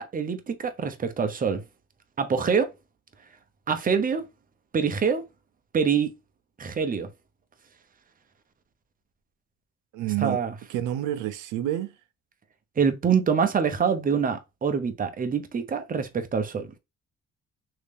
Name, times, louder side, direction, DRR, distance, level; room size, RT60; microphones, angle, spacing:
voice 1, 0.0-1.6 2.2-2.7 3.7-4.3 4.7-5.2 5.7-6.1 6.6-7.1 10.2-10.5 12.8-16.7, right 6 dB, 30° right, 0.7 m, -25 dB
voice 2, 9.9-10.4 10.7-12.0, right 12 dB, 90° right, 0.5 m, -28 dB
3.1 x 2.7 x 3.3 m
cardioid pair, 90°, 30 cm